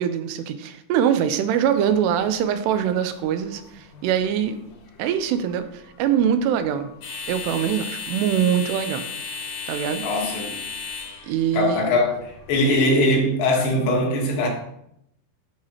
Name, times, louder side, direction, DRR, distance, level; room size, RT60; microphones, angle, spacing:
voice 1, 0.0-4.6 5.0-6.9 7.3-9.0 9.7-10.0 11.2-11.9, right 9 dB, 85° right, 2.7 m, -23 dB
sound 1, 1.9-13.2, left 5 dB, 65° left, 2.4 m, -37 dB
voice 2, 10.0-10.6 11.5-14.5, left 1 dB, 80° left, 3.4 m, -21 dB
11.5 x 4.8 x 2.8 m
omnidirectional pair, 4.8 m